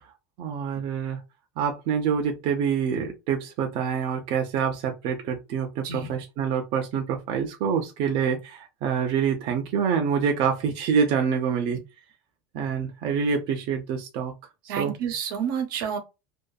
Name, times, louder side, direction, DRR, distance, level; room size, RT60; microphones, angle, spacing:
voice 1, 0.4-1.2 1.6-11.8 12.5-14.3 14.8-14.9, right 7 dB, 55° right, 0.5 m, -26 dB
voice 2, 14.7-16.0, right 7 dB, 80° right, 0.9 m, -29 dB
2.6 x 2.3 x 2.2 m
supercardioid pair, 140°, 10 cm